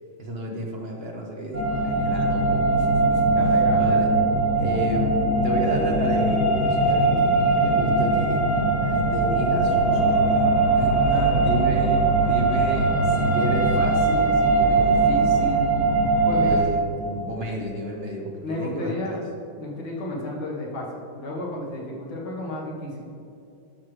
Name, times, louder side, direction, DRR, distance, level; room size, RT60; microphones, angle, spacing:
voice 1, 0.2-4.1 4.6-8.4 8.8-15.7 16.3-19.2, right 1 dB, 65° right, 0 dB, 0.6 m, -32 dB
sound 1, 1.5-16.6, right 3 dB, 30° right, 1.1 m, -21 dB
voice 2, 3.3-4.0 11.1-11.4 16.0-16.6 18.4-19.2 19.6-23.1, left 2 dB, 85° left, -3 dB, 2.3 m, -32 dB
sound 2, 9.8-15.6, equal, ahead, 1.0 m, -38 dB
11.5 x 6.1 x 3.2 m, 2.6 s
omnidirectional pair, 2.1 m